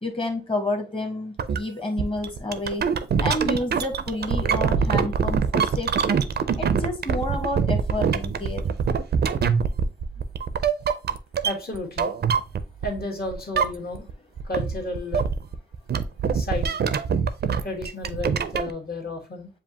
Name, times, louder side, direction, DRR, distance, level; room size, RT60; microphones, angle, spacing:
voice 1, 0.0-2.9 3.2-6.2 6.6-8.7, left 1 dB, 25° left, 4 dB, 1.2 m, -29 dB
sound 1, 1.4-1.6 2.0-13.0 13.3-14.1 14.4-18.7, right 6 dB, 55° right, 0.5 m, -24 dB
voice 2, 11.4-12.1 12.8-14.1 14.4-15.3 16.3-16.8 17.6-19.5, left 2 dB, 50° left, 1 dB, 1.5 m, -32 dB
7.2 x 2.5 x 2.8 m, 0.30 s
wide cardioid pair, 100°, 20 cm